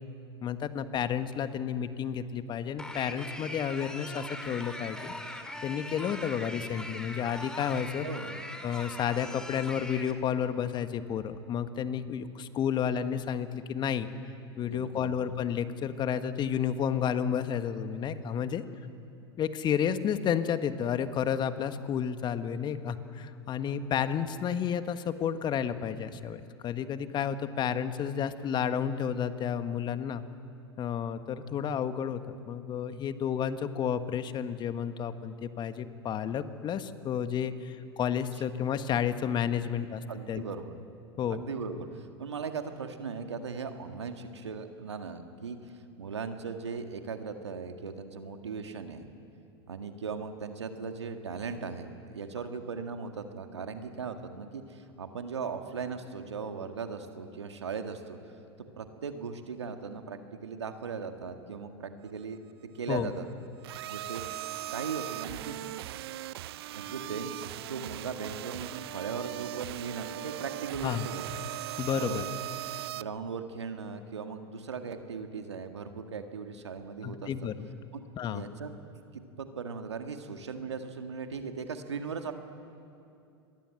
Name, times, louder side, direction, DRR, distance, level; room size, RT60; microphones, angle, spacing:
voice 1, 0.4-5.1 5.6-8.1 8.6-14.1 14.6-18.6 19.4-30.2 30.8-40.4 41.2-41.4 62.9-63.1 70.8-71.1 71.8-72.2 77.0-77.8 78.2-78.4, left 8 dB, 30° left, 10 dB, 1.5 m, -31 dB
sound 1, 2.8-10.1, left 1 dB, 5° left, 2.5 m, -41 dB
voice 2, 8.0-8.3 14.6-15.1 38.3-38.4 39.6-39.7 40.1-40.7 41.3-49.1 49.7-58.2 58.8-62.4 62.7-63.3 63.9-64.3 64.7-65.6 66.7-71.3 72.0-72.3 72.9-77.3 77.9-78.7 79.1-82.3, right 5 dB, 85° right, 6 dB, 1.9 m, -38 dB
sound 2, 63.6-73.0, right 16 dB, 65° right, 0.6 m, -39 dB
27.0 x 22.0 x 7.8 m, 2.6 s
hypercardioid pair, 95°, 14 cm